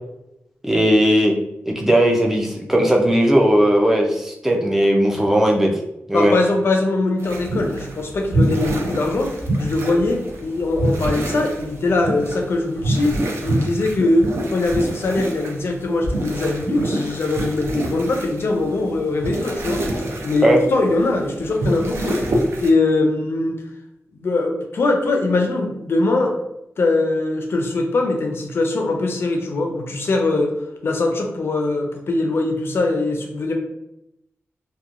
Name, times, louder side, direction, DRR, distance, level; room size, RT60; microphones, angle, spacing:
voice 1, 0.6-1.3 1.7-5.7 6.1-6.3 20.4-20.6, equal, 5° right, 0 dB, 0.4 m, -17 dB
voice 2, 6.1-9.3 9.6-19.9 20.2-22.2 22.6-23.5 24.1-26.3 26.8-30.5 30.8-33.5, left 2 dB, 55° left, 2 dB, 0.5 m, -21 dB
sound 1, 7.2-22.7, right 1 dB, 60° right, 0.5 m, -26 dB
2.8 x 2.2 x 2.4 m, 0.85 s
wide cardioid pair, 150°, 5 cm